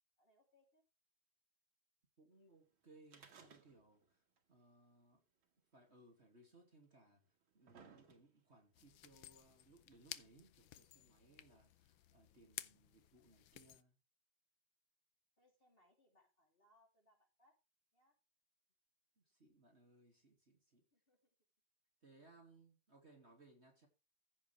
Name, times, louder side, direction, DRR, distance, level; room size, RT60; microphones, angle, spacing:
voice 1, 0.2-0.8 15.4-17.5 17.9-18.1 20.9-21.3, left 1 dB, 25° left, 3.5 m, -74 dB
voice 2, 2.2-4.2 4.5-5.2 5.7-7.2 7.5-14.0 19.2-20.8 22.0-23.9, right 2 dB, 30° right, 2.8 m, -66 dB
sound 1, 3.1-4.1 4.4-4.5 5.4-5.5 6.4-6.5 7.2-8.5 9.4-9.5, right 6 dB, 80° right, 2.7 m, -62 dB
sound 2, 8.7-13.8, left 12 dB, 80° left, 1.5 m, -55 dB
15.5 x 7.1 x 3.4 m
omnidirectional pair, 2.2 m